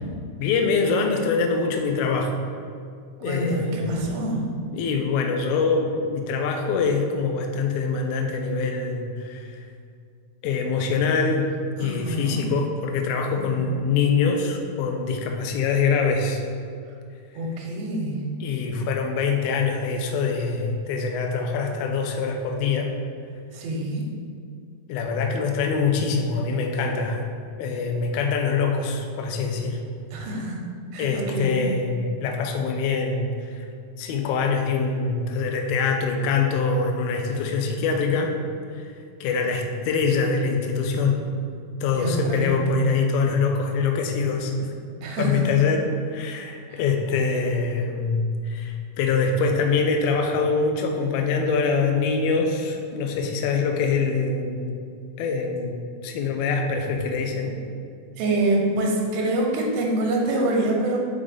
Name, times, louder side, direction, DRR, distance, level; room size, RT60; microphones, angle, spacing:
voice 1, 0.4-2.3 3.2-4.0 4.7-9.6 10.4-11.5 11.8-16.4 18.4-22.9 24.9-27.3 27.6-29.8 31.0-33.6 34.0-38.3 38.7-38.9 39.2-41.3 41.8-44.7 45.2-54.8 55.2-57.5, left 4 dB, 85° left, 2 dB, 1.7 m, -24 dB
voice 2, 3.2-4.5 11.8-12.5 13.3-13.7 17.4-18.2 23.5-24.1 30.1-30.6 30.9-31.6 41.9-42.6 45.0-45.4 46.7-46.8 58.2-61.0, right 1 dB, 90° right, 0 dB, 2.7 m, -26 dB
5.2 x 5.2 x 3.6 m, 2.3 s
omnidirectional pair, 4.2 m